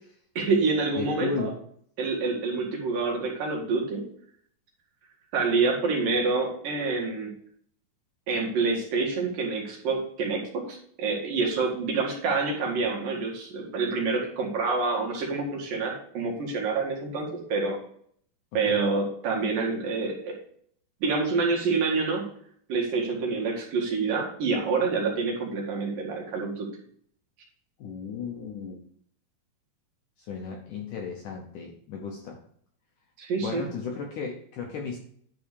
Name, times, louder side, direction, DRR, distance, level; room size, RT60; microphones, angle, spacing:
voice 1, 0.4-1.5 2.0-4.0 5.3-7.3 8.3-17.8 18.5-20.3 21.0-22.2 22.7-26.7 33.2-33.7, right 4 dB, 60° right, -1 dB, 3.3 m, -27 dB
voice 2, 1.0-1.6 18.5-18.8 27.8-28.8 30.2-32.4 33.4-35.0, left 5 dB, 70° left, 1 dB, 2.0 m, -34 dB
11.0 x 4.3 x 6.6 m, 0.63 s
omnidirectional pair, 4.9 m